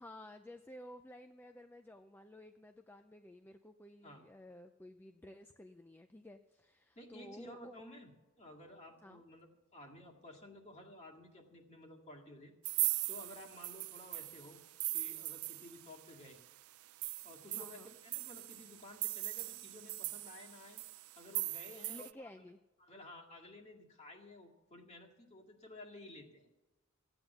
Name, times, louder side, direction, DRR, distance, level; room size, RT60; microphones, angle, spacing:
voice 1, 0.0-7.7 9.0-9.2 17.6-17.9 21.9-22.6, left 1 dB, 10° left, 7 dB, 0.4 m, -54 dB
voice 2, 7.0-8.1 8.4-12.5 13.1-14.6 14.9-16.4 17.2-20.8 21.2-22.3 22.8-26.5, left 1 dB, 30° left, 0 dB, 2.1 m, -54 dB
sound 1, 12.6-16.1 16.5-16.6 16.8-22.1, right 19 dB, 85° right, 0.5 m, -40 dB
15.0 x 8.9 x 7.0 m, 1.1 s
head